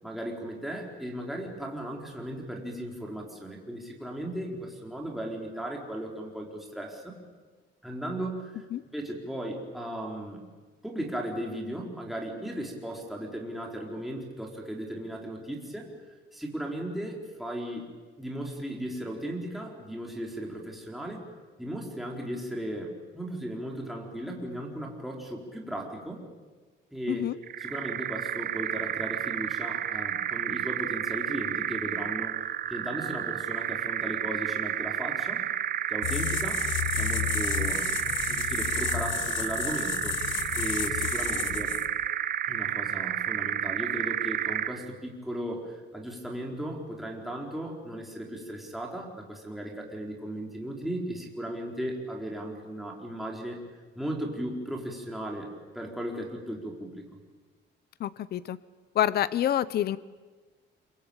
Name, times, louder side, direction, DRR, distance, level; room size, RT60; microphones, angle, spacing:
voice 1, 0.0-7.1 7.8-8.7 8.9-10.4 10.8-15.9 16.3-17.9 18.2-21.2 21.6-26.2 26.9-27.2 27.6-32.4 32.7-35.4 35.9-36.6 36.9-37.9 38.3-40.1 40.5-41.7 42.5-53.6 54.0-55.5 55.7-57.0, right 1 dB, ahead, -1 dB, 4.3 m, -36 dB
sound 1, 27.4-44.9, right 10 dB, 50° right, 0.8 m, -31 dB
sound 2, 36.0-42.1, left 13 dB, 80° left, 1.3 m, -32 dB
voice 2, 58.0-58.6 58.9-60.0, left 11 dB, 55° left, 17 dB, 0.8 m, -27 dB
26.5 x 24.0 x 8.8 m, 1.3 s
cardioid pair, 155°, 20 cm